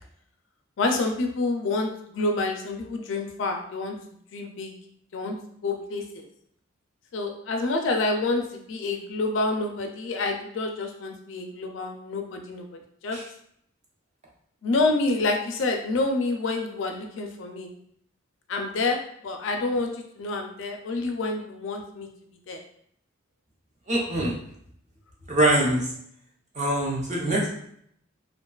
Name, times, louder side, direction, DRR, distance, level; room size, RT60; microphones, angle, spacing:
voice 1, 0.8-3.9 4.3-4.7 5.1-5.3 5.6-6.2 7.1-12.6 13.0-13.2 14.6-17.7 18.5-19.0 19.2-22.1 22.5-22.6, left 3 dB, 70° left, 3 dB, 0.4 m, -28 dB
voice 2, 23.9-24.3 25.3-25.9 26.5-27.6, right 1 dB, 35° right, -3 dB, 0.6 m, -23 dB
2.4 x 2.2 x 2.3 m, 0.68 s
head